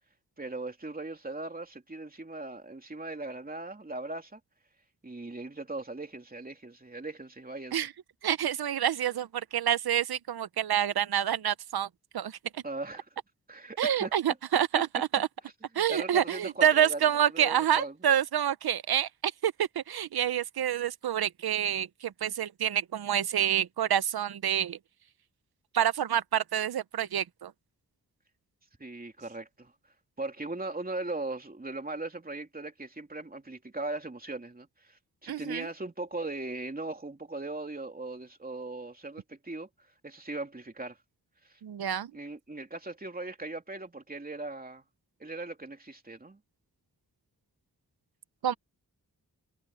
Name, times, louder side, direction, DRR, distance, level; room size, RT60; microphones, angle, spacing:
voice 1, 0.4-4.4 5.0-7.8 12.6-13.0 13.5-14.1 15.8-17.9 28.8-29.7 30.2-39.7 40.0-41.0 41.5-41.6 42.1-44.8 45.2-46.4, right 2 dB, 25° right, 3.1 m, -39 dB
voice 2, 8.2-11.9 12.1-12.6 13.8-15.3 15.7-24.8 25.7-27.5 35.3-35.7 41.6-42.1 48.4-48.5, right 10 dB, 85° right, 0.7 m, -28 dB
wide cardioid pair, 120°, 37 cm